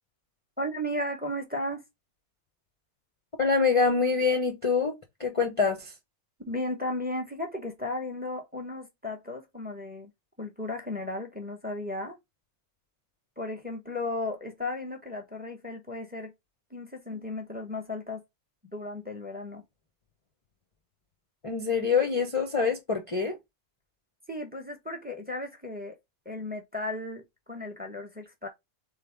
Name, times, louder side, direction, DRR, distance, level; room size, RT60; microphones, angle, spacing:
voice 1, 0.6-1.8 6.5-10.1 10.4-12.2 13.4-16.3 16.7-18.2 18.7-19.6 24.3-26.0 26.2-28.5, left 1 dB, 5° right, 1.2 m, -35 dB
voice 2, 3.4-4.9 5.2-5.9 21.4-23.4, left 5 dB, 30° left, 0.8 m, -25 dB
3.9 x 3.7 x 3.4 m
omnidirectional pair, 1.4 m